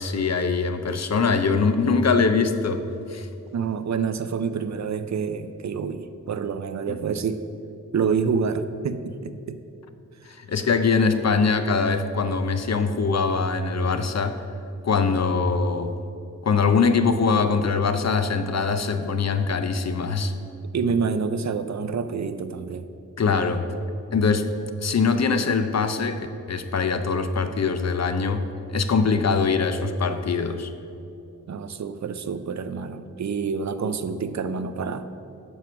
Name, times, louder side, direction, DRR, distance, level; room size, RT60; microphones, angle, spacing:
voice 1, 0.0-3.3 6.9-7.0 10.2-14.4 14.8-16.0 16.4-20.3 23.2-23.7 24.1-24.5 24.8-30.7, left 4 dB, 50° left, 9 dB, 0.5 m, -23 dB
voice 2, 3.5-7.4 7.9-9.6 20.7-22.9 31.5-35.1, right 5 dB, 55° right, 11 dB, 0.5 m, -27 dB
7.1 x 4.5 x 5.7 m, 2.7 s
cardioid pair, 50°, 33 cm